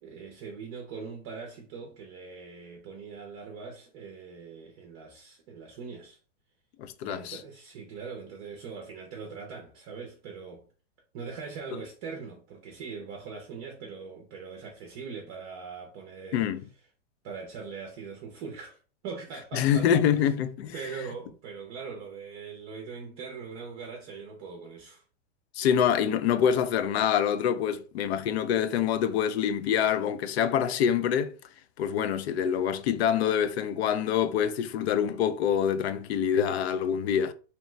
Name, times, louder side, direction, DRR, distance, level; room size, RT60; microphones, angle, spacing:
voice 1, 0.0-6.2 7.0-10.7 11.1-16.5 17.2-19.9 20.2-20.3 20.7-25.0, right 5 dB, 35° right, 0.6 m, -41 dB
voice 2, 6.8-7.4 16.3-16.6 19.5-20.7 25.6-31.3 31.8-37.3, left 8 dB, 60° left, 0.5 m, -26 dB
2.9 x 2.2 x 3.1 m
hypercardioid pair, 140°, 36 cm